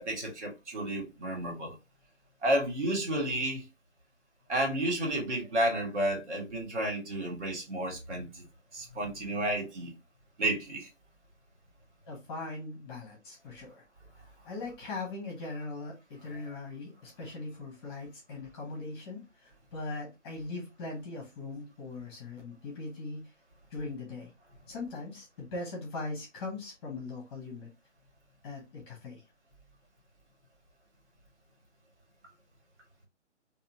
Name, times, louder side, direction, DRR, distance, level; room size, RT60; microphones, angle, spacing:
voice 1, 0.0-1.8 2.4-3.6 4.5-8.4 8.7-9.9 10.4-10.9, right 1 dB, 65° right, 1.9 m, -31 dB
voice 2, 12.1-13.8 14.4-23.2 23.7-24.3 24.7-27.7 28.4-29.2, left 3 dB, 20° left, 1.2 m, -40 dB
3.9 x 2.7 x 2.7 m
figure-of-eight pair, 150°, 37 cm